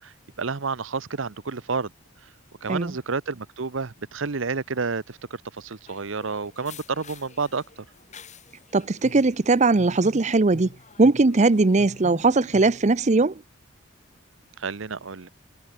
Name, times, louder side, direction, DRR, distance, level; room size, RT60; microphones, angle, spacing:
voice 1, 0.0-1.9 2.6-7.6 14.6-15.3, right 4 dB, 70° right, 0.9 m, -30 dB
sound 1, 5.9-12.9, left 7 dB, 35° left, 3.0 m, -51 dB
voice 2, 8.7-10.7 11.0-13.4, right 3 dB, 35° right, 0.6 m, -19 dB
sound 2, 9.0-12.9, equal, 60° left, 5.3 m, -44 dB
head